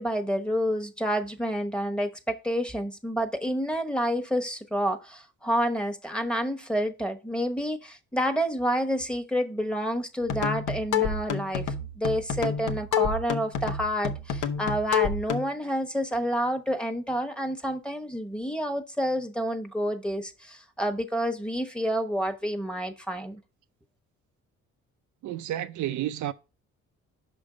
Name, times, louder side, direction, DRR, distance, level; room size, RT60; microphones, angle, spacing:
voice 1, 0.0-23.4, equal, 5° left, 1.2 m, -29 dB
sound 1, 10.2-15.5, left 7 dB, 90° left, 1.0 m, -29 dB
voice 2, 25.2-26.3, right 12 dB, 75° right, 0.6 m, -31 dB
6.3 x 5.2 x 5.1 m
cardioid pair, 90°, 30 cm